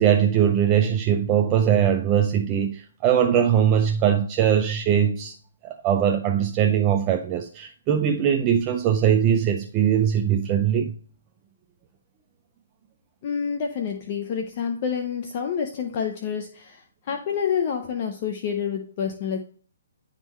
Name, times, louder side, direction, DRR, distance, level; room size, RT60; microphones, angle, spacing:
voice 1, 0.0-5.3 5.6-10.9, right 9 dB, 20° right, 0.4 m, -21 dB
voice 2, 13.2-19.4, left 7 dB, 35° left, 0.6 m, -28 dB
10.5 x 3.7 x 3.1 m
hypercardioid pair, 165°, 0 cm